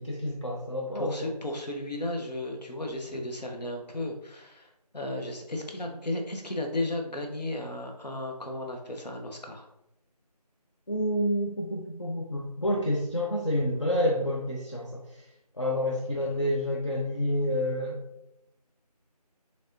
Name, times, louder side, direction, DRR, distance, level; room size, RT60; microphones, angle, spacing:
voice 1, 0.0-1.1 10.9-15.0 15.6-18.0, equal, 45° left, -3 dB, 0.5 m, -28 dB
voice 2, 0.9-9.7, left 1 dB, 80° left, 2 dB, 0.9 m, -34 dB
4.1 x 3.3 x 2.5 m, 0.86 s
figure-of-eight pair, 180°, 21 cm